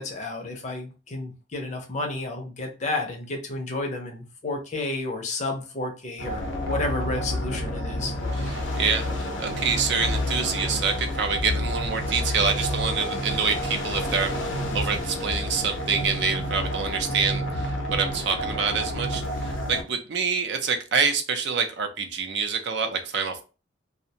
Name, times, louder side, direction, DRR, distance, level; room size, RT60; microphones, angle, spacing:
voice 1, 0.0-6.4 6.7-8.1, left 2 dB, 35° left, 3 dB, 0.5 m, -31 dB
sound 1, 6.2-19.8, equal, 85° left, 0.6 m, -29 dB
voice 2, 8.4-23.4, right 5 dB, 60° right, 5 dB, 0.4 m, -27 dB
2.5 x 2.1 x 2.7 m, 0.33 s
head